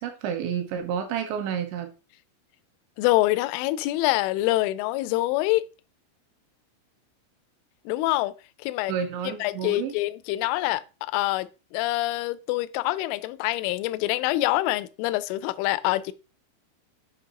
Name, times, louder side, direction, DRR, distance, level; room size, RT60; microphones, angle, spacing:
voice 1, 0.0-1.9 8.9-9.9, right 8 dB, 75° right, 3.0 m, -30 dB
voice 2, 3.0-5.7 7.9-8.3 8.6-8.9 9.2-16.1, left 17 dB, 85° left, 2.9 m, -25 dB
8.1 x 5.3 x 3.7 m
omnidirectional pair, 5.6 m